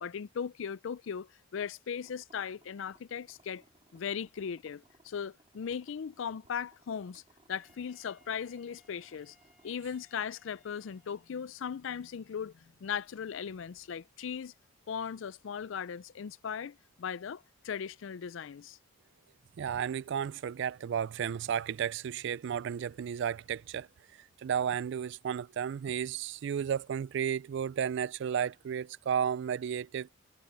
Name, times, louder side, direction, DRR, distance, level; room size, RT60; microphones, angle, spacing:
voice 1, 0.0-3.6 3.9-7.2 7.5-9.4 9.6-14.5 14.9-18.8, left 7 dB, 65° left, 0.4 m, -38 dB
sound 1, 2.0-9.8, right 2 dB, 25° right, 4.3 m, -66 dB
Wind instrument woodwind instrument, 7.5-11.4, equal, 5° right, 2.6 m, -68 dB
voice 2, 19.6-30.1, right 8 dB, 60° right, 0.3 m, -33 dB
head